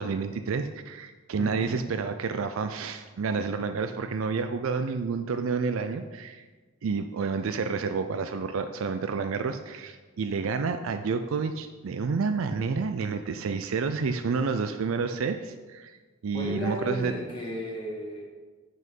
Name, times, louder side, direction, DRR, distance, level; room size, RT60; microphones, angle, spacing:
voice 1, 0.0-6.5 6.8-16.0 16.2-17.1, right 5 dB, 75° right, 9 dB, 0.4 m, -29 dB
voice 2, 1.4-1.8 16.3-18.2, left 1 dB, 20° left, -4 dB, 1.9 m, -34 dB
7.9 x 6.2 x 5.3 m, 1.4 s
head